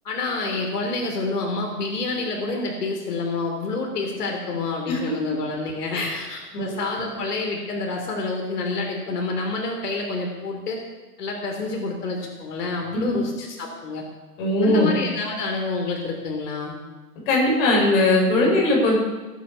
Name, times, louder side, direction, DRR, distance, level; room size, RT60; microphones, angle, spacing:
voice 1, 0.0-10.8 11.2-14.0 14.6-16.7, left 3 dB, 75° left, 1 dB, 3.4 m, -28 dB
voice 2, 4.9-5.3 5.9-6.2 6.5-6.7 12.9-13.2 14.4-14.9 17.3-19.0, left 1 dB, 35° left, -2 dB, 5.8 m, -20 dB
17.5 x 9.3 x 7.0 m, 1.2 s
hypercardioid pair, 165°, 47 cm